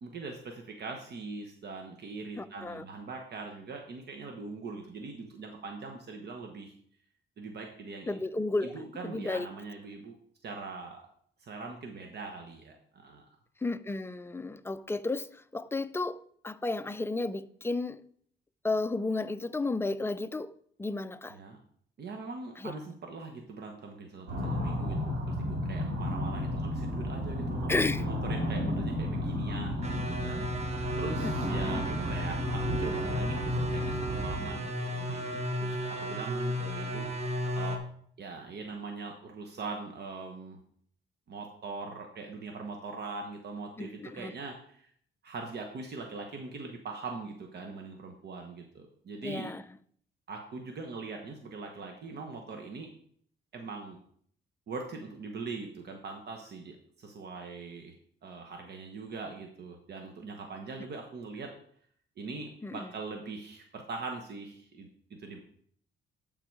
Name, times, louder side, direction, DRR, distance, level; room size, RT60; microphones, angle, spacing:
voice 1, 0.0-6.7 7.4-8.2 8.6-10.1 10.4-11.0 11.4-13.2 21.3-21.6 22.0-37.8 38.2-40.6 41.3-44.9 45.2-49.5 50.3-52.9 53.5-54.0 54.7-57.9 58.2-61.5 62.2-65.4, right 4 dB, 55° right, 1.1 m, -42 dB
voice 2, 2.4-2.8 8.1-8.7 9.0-9.5 13.6-18.0 18.6-20.5 20.8-21.4 22.6-22.7 27.7-28.0 31.2-31.8 43.8-44.3 49.2-49.6 62.6-62.9, left 2 dB, 10° left, 0.4 m, -33 dB
sound 1, 24.3-34.5, left 1 dB, 75° right, 2.7 m, -33 dB
sound 2, 29.8-37.8, equal, 35° right, 1.2 m, -34 dB
11.5 x 3.9 x 4.7 m
cardioid pair, 90°, 20 cm